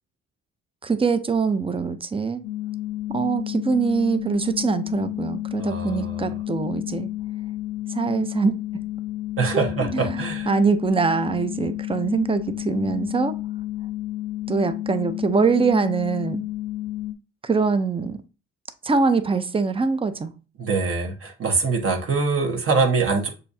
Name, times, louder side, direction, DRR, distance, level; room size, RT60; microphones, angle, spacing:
voice 1, 0.8-2.4 3.1-7.1 7.9-8.5 9.5-10.2 10.5-13.3 14.5-16.4 17.4-18.2 18.8-20.3, right 4 dB, 20° right, 0.5 m, -23 dB
sound 1, 2.4-17.1, left 15 dB, 70° left, 0.7 m, -31 dB
voice 2, 5.6-6.3 9.4-10.5 20.6-23.3, right 4 dB, 45° right, 1.2 m, -24 dB
6.6 x 2.7 x 2.7 m
cardioid pair, 90°, 30 cm